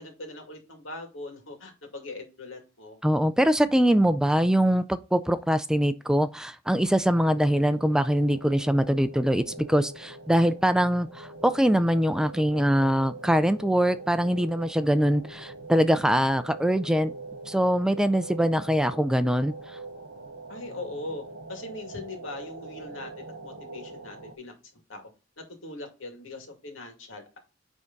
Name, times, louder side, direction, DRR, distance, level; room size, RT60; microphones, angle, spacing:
voice 1, 0.0-3.0 20.5-21.2 21.5-24.5 24.9-25.1 25.4-27.4, left 2 dB, 85° left, 2.4 m, -40 dB
voice 2, 3.0-17.1 17.5-19.5, equal, 5° right, 0.4 m, -23 dB
sound 1, 7.3-24.3, right 2 dB, 75° right, 1.0 m, -43 dB
9.5 x 3.6 x 3.9 m
head